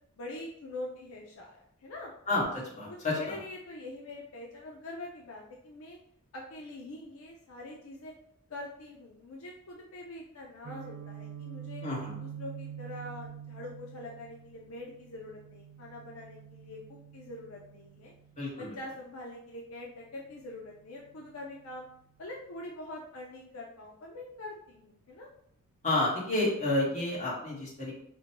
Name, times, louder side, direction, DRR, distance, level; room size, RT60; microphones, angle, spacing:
voice 1, 0.2-2.1 2.9-6.0 6.3-8.1 8.5-11.8 12.2-18.1 18.5-21.9 22.2-25.3, left 2 dB, 70° left, -1 dB, 0.5 m, -44 dB
voice 2, 2.3-3.2 11.8-12.1 18.4-18.7 25.8-27.9, left 2 dB, 35° left, -5 dB, 1.4 m, -30 dB
Guitar, 10.6-18.5, right 9 dB, 50° right, 0.4 m, -46 dB
5.1 x 2.2 x 2.9 m, 0.71 s
head